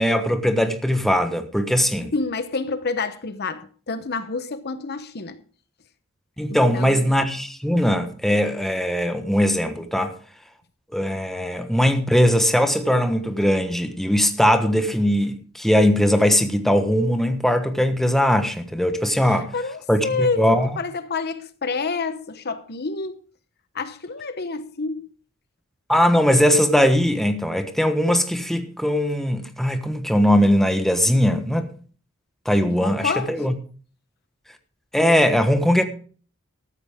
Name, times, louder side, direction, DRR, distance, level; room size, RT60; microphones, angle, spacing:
voice 1, 0.0-2.1 6.4-10.1 10.9-19.5 19.9-20.7 25.9-31.7 32.4-33.5 34.9-35.8, equal, ahead, 1.3 m, -20 dB
voice 2, 2.1-5.4 6.5-7.0 19.3-20.4 20.8-23.2 23.7-25.1 32.7-33.3, left 4 dB, 50° left, 1.0 m, -28 dB
14.0 x 13.0 x 3.6 m
head